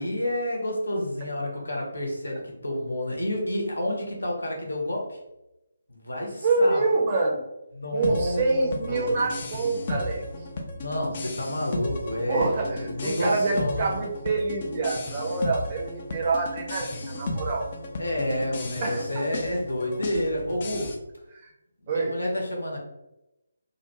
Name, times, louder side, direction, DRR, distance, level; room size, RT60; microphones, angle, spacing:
voice 1, 0.0-5.2 5.9-6.8 7.7-9.2 10.8-14.0 18.0-20.9 21.8-22.8, left 1 dB, 75° left, -1 dB, 0.8 m, -29 dB
voice 2, 6.4-7.4 7.9-10.5 12.3-17.7 18.8-19.2 21.3-21.5 21.9-22.2, right 3 dB, 30° right, 0 dB, 0.5 m, -26 dB
sound 1, 8.0-20.9, left 2 dB, 35° left, 0.4 m, -35 dB
2.5 x 2.1 x 2.9 m, 0.91 s
figure-of-eight pair, 145°, 0 cm